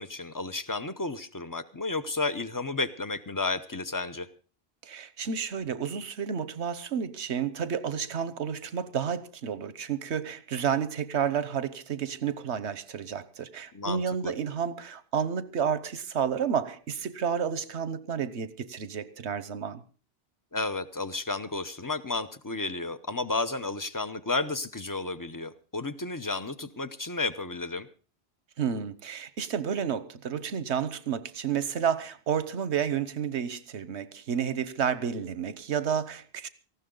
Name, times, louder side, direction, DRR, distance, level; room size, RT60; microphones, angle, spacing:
voice 1, 0.0-4.3 13.7-14.3 20.5-27.9, left 3 dB, 20° left, 0.8 m, -32 dB
voice 2, 4.8-19.8 28.6-36.5, right 7 dB, 90° right, 1.3 m, -31 dB
18.5 x 15.0 x 3.9 m
omnidirectional pair, 1.1 m